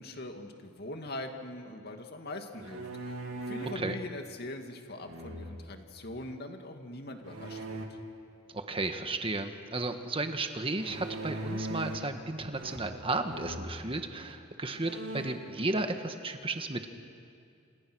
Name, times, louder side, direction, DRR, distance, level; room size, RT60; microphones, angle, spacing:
voice 1, 0.0-3.2 3.5-7.8, left 1 dB, 50° left, 4 dB, 2.3 m, -42 dB
sound 1, 2.5-3.9 5.0-5.8 7.3-7.9 10.8-12.2 12.5-13.0 13.3-13.7 14.3-14.4 14.7-15.5, right 1 dB, 80° right, 2.8 m, -39 dB
voice 2, 8.5-16.9, right 2 dB, 25° right, 6 dB, 1.6 m, -34 dB
28.0 x 28.0 x 6.3 m, 2.4 s
head